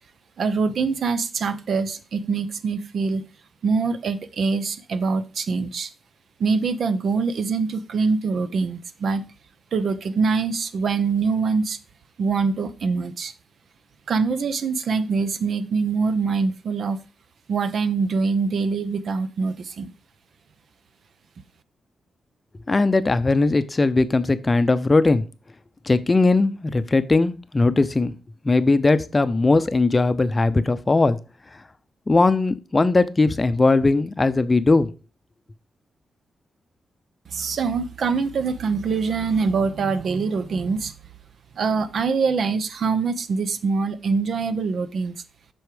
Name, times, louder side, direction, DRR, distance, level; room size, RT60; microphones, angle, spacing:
voice 1, 0.4-3.3 3.6-5.9 6.4-9.3 9.7-11.8 12.2-13.3 14.1-17.0 17.5-19.9 37.3-40.9 41.6-45.2, right 4 dB, 60° right, 0.8 m, -24 dB
voice 2, 22.7-25.2 25.9-28.1 28.4-31.2 32.1-34.9, left 3 dB, 20° left, 0.7 m, -19 dB
8.0 x 6.2 x 4.9 m
wide cardioid pair, 145°, 0 cm